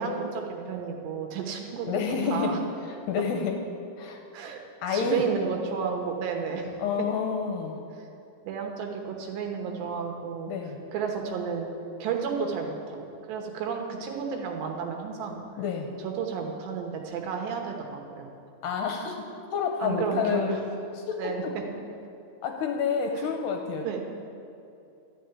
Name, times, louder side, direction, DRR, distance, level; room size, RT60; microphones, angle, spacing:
voice 1, 0.0-2.0 2.3-2.6 4.3-4.6 4.9-6.7 8.4-10.5 10.9-11.7 12.0-15.5 16.0-18.3 19.8-20.6 21.2-21.6 23.1-23.3 23.8-24.0, right 6 dB, 75° right, 3 dB, 3.1 m, -32 dB
voice 2, 1.9-2.6 2.8-3.6 4.0-4.2 4.8-5.2 6.8-7.8 10.5-10.8 15.6-15.9 18.6-19.2 19.5-20.6 21.0-21.5 22.4-24.0, left 6 dB, 75° left, 3 dB, 2.7 m, -29 dB
12.5 x 6.8 x 9.7 m, 2.7 s
omnidirectional pair, 5.4 m